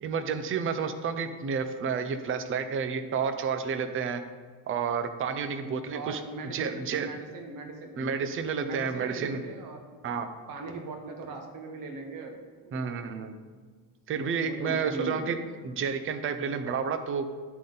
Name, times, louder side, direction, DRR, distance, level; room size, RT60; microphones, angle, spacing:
voice 1, 0.0-4.2 4.7-6.2 6.5-7.1 8.0-9.4 10.0-10.3 12.7-13.4 14.1-15.4 15.6-17.3, right 6 dB, 30° right, 9 dB, 0.5 m, -30 dB
voice 2, 5.5-7.9 8.6-9.9 10.5-13.0 14.1-15.3, right 2 dB, 45° right, 4 dB, 1.1 m, -40 dB
11.0 x 3.8 x 3.9 m, 1.5 s
cardioid pair, 125°, 47 cm